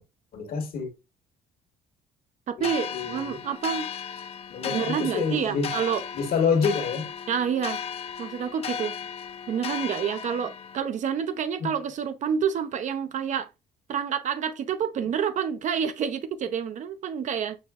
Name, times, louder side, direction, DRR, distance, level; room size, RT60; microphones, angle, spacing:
voice 1, 0.3-0.9 2.6-3.4 4.5-5.7 6.1-7.1 11.6-11.7, left 5 dB, 60° left, 1.2 m, -27 dB
voice 2, 2.5-3.9 4.7-6.0 7.3-7.8 8.2-9.0 9.5-13.5 13.9-17.6, right 7 dB, 45° right, 0.5 m, -28 dB
sound 1, 2.6-10.8, left 7 dB, 35° left, 0.5 m, -35 dB
5.9 x 2.6 x 2.3 m
cardioid pair, 110°, 17 cm